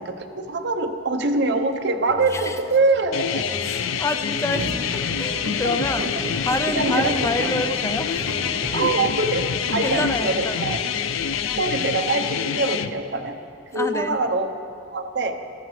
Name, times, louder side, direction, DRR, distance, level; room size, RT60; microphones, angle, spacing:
voice 1, 0.0-3.5 5.6-5.8 6.7-7.3 8.7-9.5 9.7-10.8 11.6-13.4 13.7-14.5 14.9-15.4, right 3 dB, 55° right, 5 dB, 0.8 m, -24 dB
sound 1, 2.1-11.7, equal, 25° right, 1.5 m, -43 dB
sound 2, 3.1-12.9, left 8 dB, 80° left, 0.4 m, -26 dB
voice 2, 3.6-4.7 4.9-6.1 6.4-8.9 9.8-10.8 13.7-14.2, left 2 dB, 15° left, 7 dB, 0.4 m, -28 dB
sound 3, 4.5-10.2, right 1 dB, 75° right, 1.1 m, -34 dB
15.0 x 12.5 x 3.2 m, 2.6 s
head